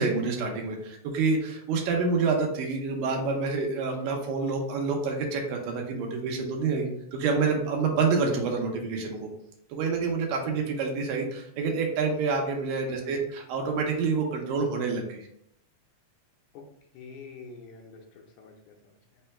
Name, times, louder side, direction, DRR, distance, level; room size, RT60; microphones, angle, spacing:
voice 1, 0.0-9.3 9.7-15.3, right 4 dB, 85° right, 2 dB, 2.4 m, -27 dB
voice 2, 12.9-13.2 16.5-16.6 16.9-19.2, left 4 dB, 75° left, 0 dB, 1.9 m, -46 dB
5.4 x 2.2 x 4.2 m, 0.74 s
omnidirectional pair, 3.8 m